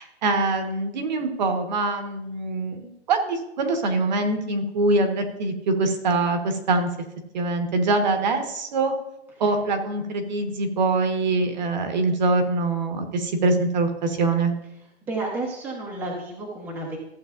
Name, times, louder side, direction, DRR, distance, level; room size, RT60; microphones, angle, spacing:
voice 1, 0.0-6.9 7.3-8.9 9.4-14.5, right 3 dB, 40° right, 5 dB, 1.4 m, -24 dB
voice 2, 15.1-17.0, right 2 dB, 5° right, -3 dB, 1.1 m, -31 dB
14.5 x 7.8 x 2.6 m, 0.83 s
hypercardioid pair, 160°, 34 cm